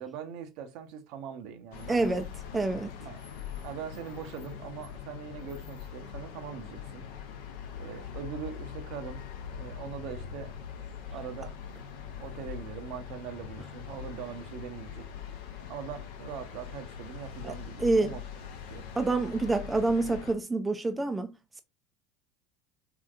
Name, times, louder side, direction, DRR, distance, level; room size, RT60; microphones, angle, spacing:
voice 1, 0.0-2.0 3.0-3.2 3.6-7.1 7.8-11.8 12.1-15.1 15.7-18.2 18.7-18.9, right 8 dB, 60° right, 0.6 m, -42 dB
sound 1, 1.7-20.3, left 8 dB, 65° left, 0.6 m, -42 dB
voice 2, 1.9-2.2 2.5-2.9 17.5-17.6 17.8-18.1 19.0-21.6, right 3 dB, 15° right, 0.4 m, -27 dB
3.6 x 2.5 x 2.3 m
figure-of-eight pair, 70°, 0 cm